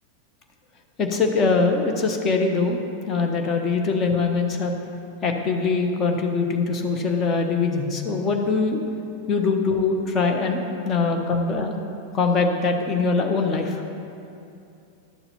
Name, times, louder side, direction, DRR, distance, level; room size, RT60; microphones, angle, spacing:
voice 1, 1.0-2.8 3.1-4.7 5.2-8.8 9.3-11.7 12.1-13.8, left 4 dB, 30° left, 3 dB, 1.0 m, -22 dB
11.5 x 7.0 x 4.2 m, 2.7 s
figure-of-eight pair, 90°, 0 cm